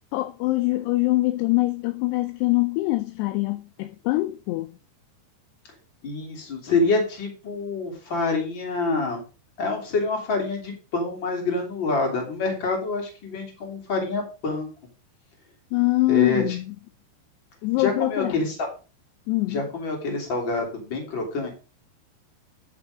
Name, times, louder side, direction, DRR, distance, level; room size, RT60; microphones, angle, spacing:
voice 1, 0.1-4.8 15.7-16.8 17.6-18.4 19.3-19.6, left 20 dB, 85° left, 2.4 m, -24 dB
voice 2, 6.0-9.2 9.6-14.7 16.1-16.6 17.8-18.7 19.5-21.5, left 3 dB, 30° left, 3.0 m, -26 dB
11.0 x 6.2 x 4.9 m
omnidirectional pair, 5.3 m